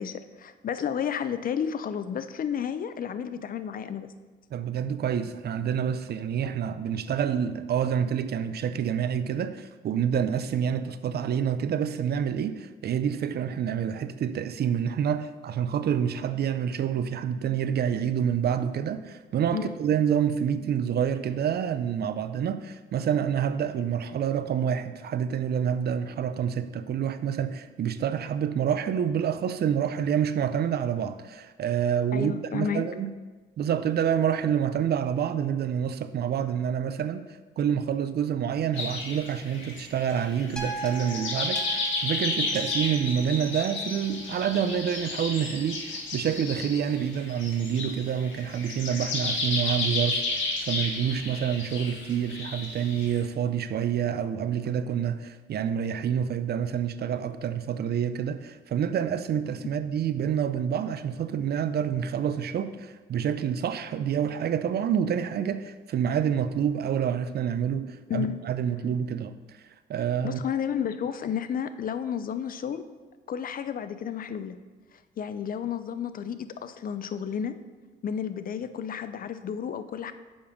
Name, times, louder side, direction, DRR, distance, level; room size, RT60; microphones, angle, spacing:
voice 1, 0.0-4.1 19.5-19.7 32.1-32.8 59.6-59.7 68.1-68.4 70.2-72.9 73.3-74.6 75.2-77.5 78.0-80.1, left 8 dB, 45° left, 12 dB, 0.5 m, -32 dB
voice 2, 4.5-33.1 33.6-69.4 69.9-70.4, right 8 dB, 55° right, 12 dB, 0.5 m, -28 dB
sound 1, 38.7-53.2, left 3 dB, 70° left, 1.8 m, -32 dB
sound 2, 40.6-44.9 45.6-45.7, right 3 dB, 5° left, 1.3 m, -41 dB
7.0 x 5.2 x 5.1 m, 1.3 s
cardioid pair, 90°, 20 cm